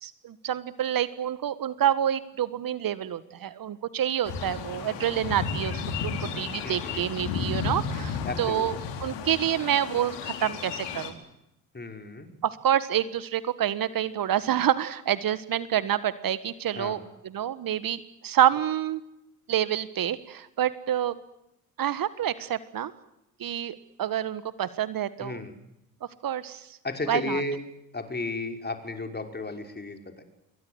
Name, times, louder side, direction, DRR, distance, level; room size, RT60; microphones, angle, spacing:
voice 1, 0.0-11.2 12.4-17.0 17.3-19.0 19.5-21.2 21.8-22.9 23.4-25.4 26.2-26.8 27.1-27.4, right 10 dB, 50° right, 16 dB, 1.6 m, -28 dB
sound 1, 4.2-11.1, left 6 dB, 70° left, 4.5 m, -33 dB
voice 2, 6.6-7.1 8.2-8.7 11.7-12.3 16.7-17.0 25.2-25.5 26.8-27.6 27.9-30.2, left 2 dB, 20° left, 6 dB, 5.6 m, -33 dB
27.5 x 23.0 x 8.1 m, 0.85 s
hypercardioid pair, 55°, 44 cm